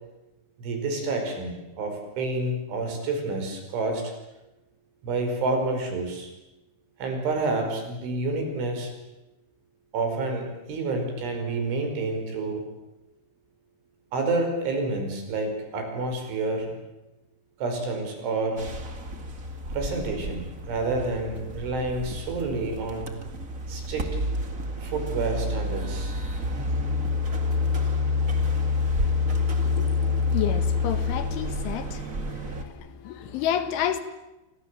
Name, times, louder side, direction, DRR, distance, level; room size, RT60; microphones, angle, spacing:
voice 1, 0.6-4.1 5.0-6.3 7.0-8.9 9.9-12.7 14.1-16.8 17.6-18.7 19.7-23.1 23.7-24.2 24.8-26.1, right 3 dB, 80° right, 7.6 m, -29 dB
sound 1, 18.6-32.6, left 3 dB, 35° right, 1.3 m, -28 dB
voice 2, 29.4-34.0, left 10 dB, 85° left, 4.2 m, -31 dB
29.0 x 25.5 x 7.6 m
omnidirectional pair, 5.4 m